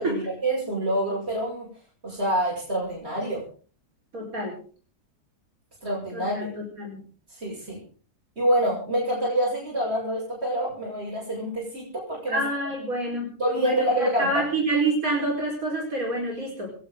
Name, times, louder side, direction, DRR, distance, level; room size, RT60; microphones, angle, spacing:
voice 1, 0.0-1.7 2.0-3.4 5.8-6.5 7.3-7.8 8.4-12.4 13.4-14.4, right 1 dB, 40° right, -5 dB, 8.2 m, -27 dB
voice 2, 4.1-4.6 6.1-7.0 12.3-13.3 13.6-16.7, right 2 dB, 60° right, 0 dB, 5.3 m, -27 dB
27.0 x 12.0 x 3.9 m, 0.41 s
omnidirectional pair, 1.7 m